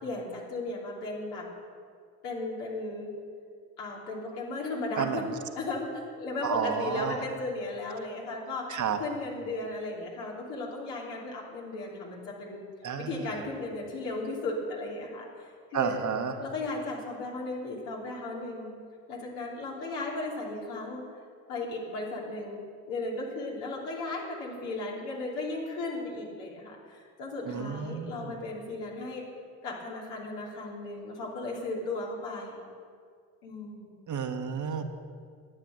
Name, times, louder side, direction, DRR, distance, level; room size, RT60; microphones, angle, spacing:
voice 1, 0.0-1.4 2.2-3.1 3.8-5.3 5.5-12.6 13.0-16.0 16.4-18.7 19.1-21.0 21.5-22.6 22.9-29.2 29.6-32.6 33.4-34.0, left 2 dB, 75° left, -2 dB, 3.1 m, -36 dB
voice 2, 6.4-7.2 8.7-9.0 12.8-13.3 15.7-16.3 27.5-28.3 34.1-34.8, right 7 dB, 45° right, 7 dB, 1.2 m, -31 dB
11.0 x 8.8 x 7.7 m, 2.1 s
hypercardioid pair, 60°, 42 cm